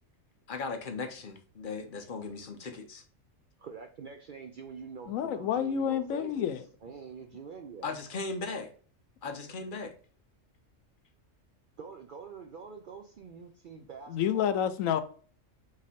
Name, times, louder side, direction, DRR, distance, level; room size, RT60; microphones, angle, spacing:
voice 1, 0.5-3.0 7.8-8.7 9.2-10.0, left 4 dB, 50° left, 0.7 m, -37 dB
voice 2, 3.6-6.5 6.8-7.9 11.8-14.6, right 6 dB, 65° right, 0.5 m, -45 dB
voice 3, 5.1-6.6 13.8-15.0, left 9 dB, 85° left, 1.0 m, -29 dB
3.7 x 3.2 x 4.1 m
omnidirectional pair, 1.3 m